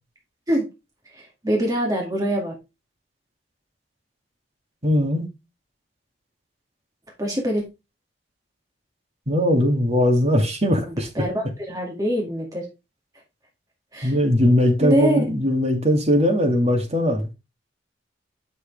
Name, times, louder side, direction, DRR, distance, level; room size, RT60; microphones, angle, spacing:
voice 1, 1.4-2.5 7.2-7.6 11.2-12.6 13.9-14.1 14.8-15.2, equal, 20° right, 2.1 m, -23 dB
voice 2, 4.8-5.3 9.3-11.2 14.0-17.3, equal, 35° right, 2.1 m, -20 dB
7.2 x 6.4 x 3.3 m
head